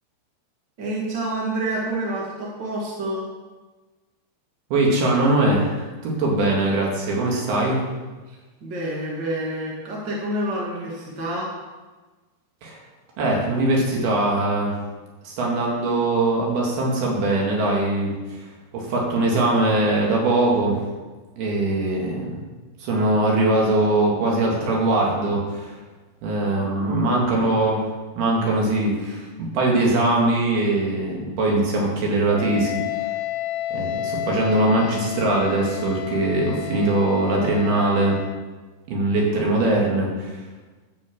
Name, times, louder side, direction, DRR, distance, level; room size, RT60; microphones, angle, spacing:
voice 1, 0.8-3.3 8.3-11.5 26.6-27.2, right 1 dB, 40° right, -4 dB, 1.6 m, -28 dB
voice 2, 4.7-7.8 12.6-12.8 13.2-14.7 15.2-18.5 18.7-20.8 21.4-22.4 22.8-25.8 26.2-27.8 28.2-33.1 33.7-38.2 38.9-40.4, right 2 dB, 65° right, -2 dB, 4.2 m, -21 dB
Wind instrument woodwind instrument, 32.3-38.5, left 13 dB, 80° left, 2.6 m, -31 dB
12.0 x 7.5 x 7.0 m, 1.3 s
omnidirectional pair, 4.8 m